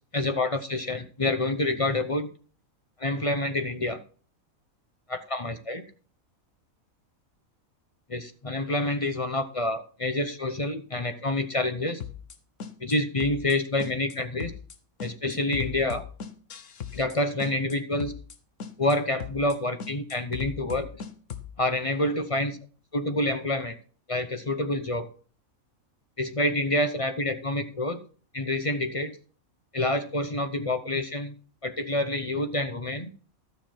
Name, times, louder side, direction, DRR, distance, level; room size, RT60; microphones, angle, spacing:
voice 1, 0.1-2.3 3.0-4.0 5.1-5.8 8.1-12.0 12.8-14.5 15.0-16.0 16.9-18.1 18.8-21.0 21.6-22.6 22.9-23.7 24.1-25.1 26.2-28.0 28.3-29.2 29.7-31.3 31.6-33.1, left 1 dB, 30° left, 8 dB, 0.8 m, -27 dB
sound 1, 12.0-12.4 12.6-13.0 13.2-13.6 13.8-14.2 14.4-14.8 15.0-17.2 17.4-17.8 18.0-18.4 18.6-19.0 19.2-19.6 19.8-21.5, left 8 dB, 65° left, 1.3 m, -37 dB
13.0 x 6.7 x 4.4 m, 0.41 s
omnidirectional pair, 1.5 m